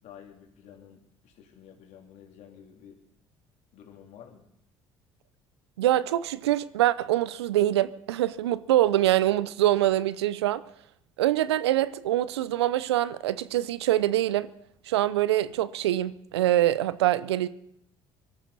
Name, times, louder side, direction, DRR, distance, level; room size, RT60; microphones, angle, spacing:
voice 1, 0.0-3.0 3.7-4.4, left 8 dB, 60° left, 3.3 m, -51 dB
voice 2, 5.8-10.6 11.2-14.5 14.9-17.5, right 13 dB, 85° right, 0.6 m, -24 dB
24.0 x 13.0 x 4.1 m
hypercardioid pair, 60°, 14 cm